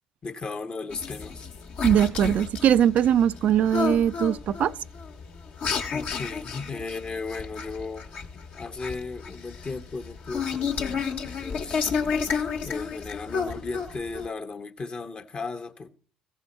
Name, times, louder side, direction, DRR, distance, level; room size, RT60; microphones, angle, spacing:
voice 1, 0.2-1.5 5.9-8.1 8.5-11.9 12.6-16.0, left 4 dB, 40° left, 0.9 m, -36 dB
sound 1, 0.9-14.3, left 6 dB, 65° left, 1.2 m, -31 dB
voice 2, 1.8-4.7, right 9 dB, 60° right, 0.3 m, -21 dB
14.5 x 5.5 x 4.1 m
hypercardioid pair, 60°, 3 cm